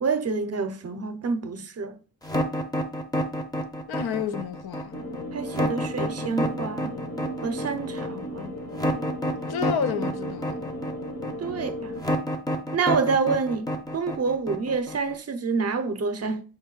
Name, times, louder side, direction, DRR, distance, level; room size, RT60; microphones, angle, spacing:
voice 1, 0.0-2.0 5.3-6.9 7.4-8.6 11.4-11.9 12.7-16.4, right 4 dB, 45° right, 0.6 m, -27 dB
sound 1, 2.2-15.1, equal, 10° left, 0.6 m, -29 dB
voice 2, 3.9-5.0 9.5-10.6, left 7 dB, 90° left, 0.5 m, -30 dB
sound 2, 4.9-12.0, equal, 45° left, 0.8 m, -35 dB
5.2 x 2.6 x 3.7 m
wide cardioid pair, 125°, 36 cm